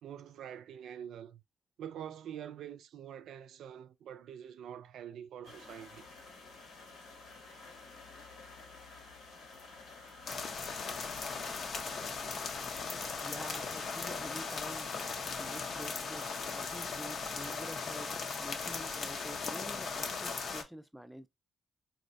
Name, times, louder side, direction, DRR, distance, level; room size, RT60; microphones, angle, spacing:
voice 1, 0.0-1.4 1.8-6.0, right 9 dB, 75° right, 0.3 m, -46 dB
sound 1, 5.4-14.4, left 3 dB, 75° left, 1.2 m, -52 dB
sound 2, 10.3-20.6, left 4 dB, 55° left, 0.6 m, -38 dB
voice 2, 13.2-21.3, equal, ahead, 0.4 m, -48 dB
4.0 x 2.1 x 2.6 m
cardioid pair, 90°, 0 cm